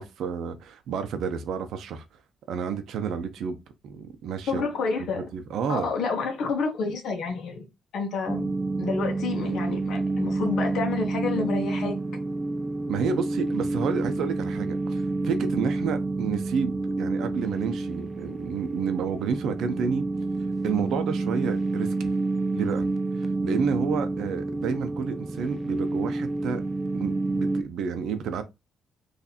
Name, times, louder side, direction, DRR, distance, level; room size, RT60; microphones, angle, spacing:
voice 1, 0.0-2.0 2.5-3.6 3.8-4.7 5.2-5.9 12.9-20.1 20.6-22.1 22.5-22.8 23.2-26.6 26.9-28.4, right 6 dB, 75° right, 0.6 m, -30 dB
voice 2, 4.5-5.3 5.7-7.7 7.9-8.5 8.8-12.0, left 4 dB, 70° left, 0.9 m, -29 dB
sound 1, 8.3-27.6, right 3 dB, 25° right, 0.3 m, -29 dB
4.1 x 2.6 x 2.7 m
cardioid pair, 90°, 0 cm